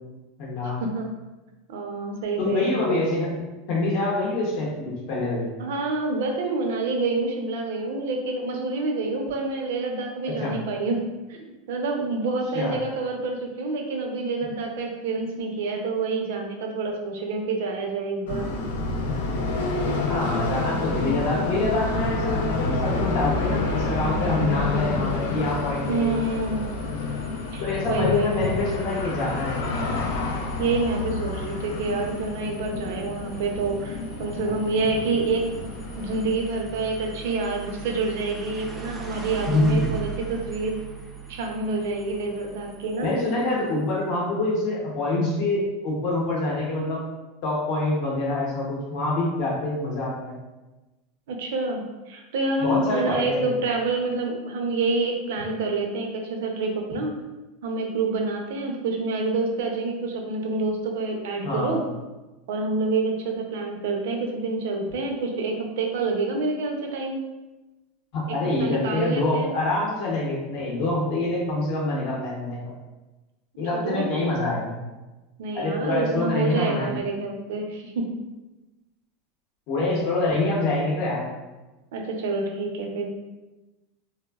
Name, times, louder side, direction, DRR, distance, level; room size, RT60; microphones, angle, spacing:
voice 1, 0.4-0.8 2.4-3.4 3.7-5.5 10.3-10.6 12.5-12.8 20.0-26.1 27.6-30.1 39.5-39.9 43.0-47.0 47.4-50.4 52.6-53.5 61.4-61.9 68.1-72.6 73.6-74.8 75.5-77.0 79.7-81.3, left 2 dB, 50° left, -4 dB, 0.7 m, -26 dB
voice 2, 1.7-2.7 5.6-11.0 11.3-18.5 25.9-26.7 27.5-28.4 30.6-35.5 36.0-40.8 41.3-43.1 51.3-57.1 57.6-61.8 62.5-67.2 68.3-69.5 73.7-74.1 75.4-78.2 81.9-83.1, right 3 dB, 75° right, 2 dB, 0.4 m, -27 dB
sound 1, 18.3-36.3, left 3 dB, 90° left, 0.4 m, -28 dB
sound 2, 25.2-43.7, right 6 dB, 5° right, 0.3 m, -41 dB
3.2 x 2.0 x 2.2 m, 1.1 s
supercardioid pair, 155°, 0 cm